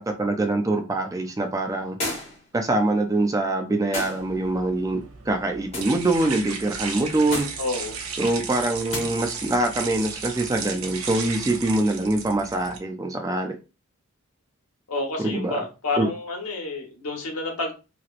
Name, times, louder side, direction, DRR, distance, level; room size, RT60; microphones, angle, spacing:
voice 1, 0.0-2.0 2.5-7.5 8.2-13.6 15.2-15.6 16.0-16.1, right 2 dB, 15° right, 0.3 m, -24 dB
sound 1, 2.0-2.5 3.9-4.3 5.7-6.0 7.3-7.6 8.9-9.1, left 1 dB, 30° left, 1.1 m, -31 dB
sound 2, 4.2-12.8, right 5 dB, 75° right, 0.7 m, -35 dB
voice 2, 7.6-8.0 14.9-17.7, left 2 dB, 85° left, 1.0 m, -29 dB
2.9 x 2.9 x 2.4 m
head